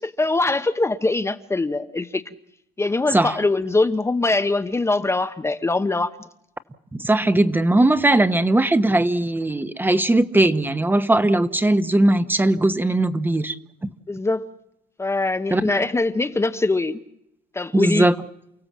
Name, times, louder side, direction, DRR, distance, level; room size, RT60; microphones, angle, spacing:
voice 1, 0.0-2.3 2.8-6.1 14.1-14.5 15.0-17.0 17.5-18.1, left 3 dB, 15° left, 9 dB, 1.0 m, -22 dB
voice 2, 6.9-13.9 15.5-15.8 17.7-18.2, right 1 dB, 10° right, 12 dB, 1.2 m, -19 dB
29.5 x 16.5 x 7.5 m, 0.80 s
cardioid pair, 110°, 17 cm